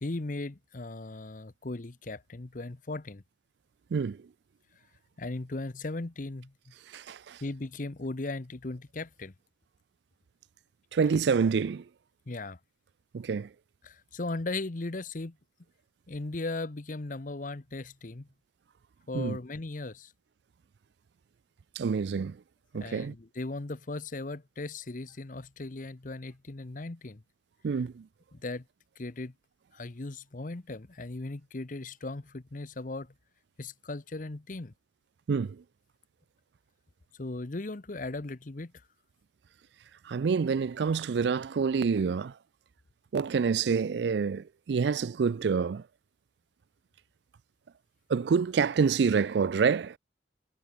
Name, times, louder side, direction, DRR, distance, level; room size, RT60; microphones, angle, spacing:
voice 1, 0.0-3.2 5.2-6.5 7.4-9.3 12.3-12.6 13.8-15.4 16.1-18.3 19.1-20.1 22.8-27.2 28.3-28.6 29.0-29.3 29.7-33.1 33.6-34.7 37.1-38.7, left 2 dB, 45° left, 0.9 m, -37 dB
voice 2, 3.9-4.2 6.9-7.4 10.9-11.8 13.1-13.5 19.1-19.4 21.8-22.4 22.7-23.1 27.6-28.1 35.3-35.6 40.1-42.3 43.1-45.8 48.1-50.0, right 5 dB, 65° right, 0.4 m, -27 dB
head